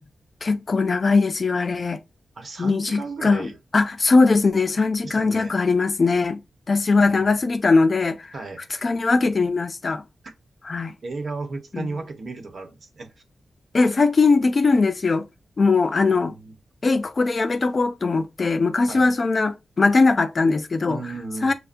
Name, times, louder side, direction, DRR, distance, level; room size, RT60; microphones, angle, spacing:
voice 1, 0.4-2.0 2.6-6.4 6.7-8.3 8.8-10.0 10.7-10.9 11.7-11.9 13.7-15.3 15.6-16.3 16.8-21.0 21.4-21.5, left 3 dB, 45° left, 0.5 m, -20 dB
voice 2, 2.4-3.6 5.0-5.6 7.0-7.2 8.3-8.7 11.0-13.1 16.0-16.5 18.9-19.1 20.9-21.5, right 3 dB, 55° right, 1.1 m, -34 dB
6.6 x 2.2 x 2.5 m
wide cardioid pair, 95°, 0 cm